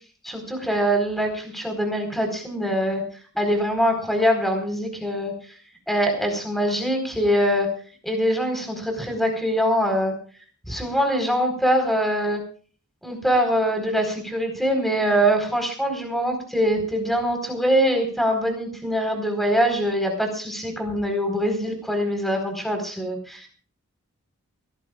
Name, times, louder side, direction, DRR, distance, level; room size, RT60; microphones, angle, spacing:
voice 1, 0.2-3.0 3.3-5.3 5.9-7.7 8.0-10.1 10.7-12.4 13.0-23.5, equal, ahead, 4 dB, 4.4 m, -23 dB
23.0 x 18.0 x 2.4 m, 0.41 s
head